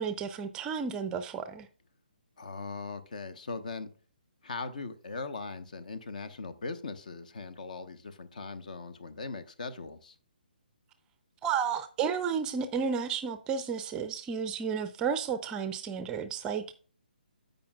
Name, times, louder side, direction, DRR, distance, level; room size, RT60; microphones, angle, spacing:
voice 1, 0.0-1.7 11.4-16.7, right 6 dB, 15° right, 0.5 m, -32 dB
voice 2, 2.4-3.9 4.4-10.1, left 4 dB, 55° left, 1.1 m, -40 dB
16.0 x 5.3 x 2.3 m
figure-of-eight pair, 135°, 5 cm